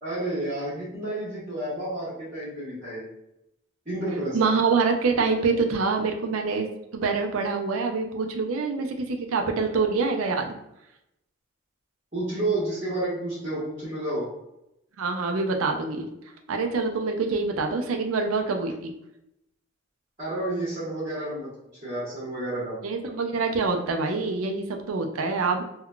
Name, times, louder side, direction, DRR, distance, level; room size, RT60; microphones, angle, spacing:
voice 1, 0.0-3.0 3.8-4.4 12.1-14.3 20.2-21.5 21.8-22.8, right 1 dB, 35° right, -9 dB, 1.1 m, -30 dB
voice 2, 4.3-10.6 15.0-16.1 16.5-18.9 22.8-25.6, right 4 dB, 85° right, 4 dB, 0.4 m, -25 dB
3.6 x 2.2 x 2.2 m, 0.83 s
head